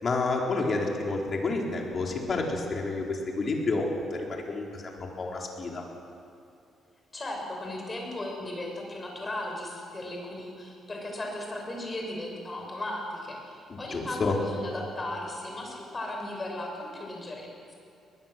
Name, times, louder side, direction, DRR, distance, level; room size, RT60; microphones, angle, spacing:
voice 1, 0.0-5.8 13.7-14.4, left 3 dB, 40° left, 0 dB, 4.2 m, -30 dB
voice 2, 7.1-17.7, left 1 dB, 25° left, 0 dB, 6.3 m, -36 dB
21.0 x 21.0 x 7.6 m, 2.6 s
cardioid pair, 115°, 0 cm